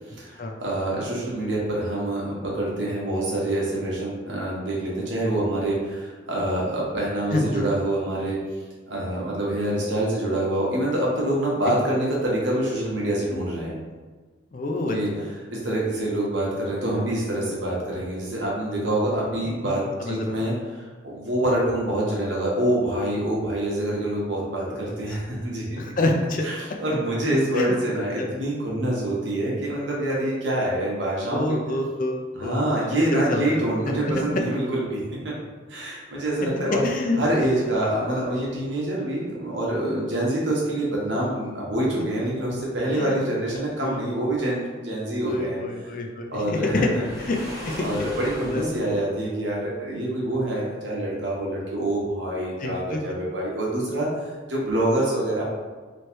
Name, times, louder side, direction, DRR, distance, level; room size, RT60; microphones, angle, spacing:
voice 1, 0.2-8.4 8.9-13.7 14.9-15.1 15.5-25.8 26.4-31.6 32.3-35.3 35.7-36.8 37.2-45.9 46.3-47.0 47.8-55.4, right 1 dB, 85° right, -4 dB, 1.3 m, -26 dB
voice 2, 7.3-7.7 14.5-15.3 19.6-19.7 20.0-20.4 24.6-24.7 25.8-26.4 27.5-27.8 28.2-28.3 31.3-32.6 32.9-34.1 36.4-36.5 36.8-37.2 42.9-43.2 43.5-44.0 45.2-46.9 47.2-47.4 47.6-48.1 48.4-48.6 52.6-53.0, left 2 dB, 45° left, 3 dB, 0.5 m, -28 dB
Waves surf, 46.8-48.9, equal, 20° right, 1.1 m, -38 dB
3.2 x 3.1 x 4.5 m, 1.4 s
head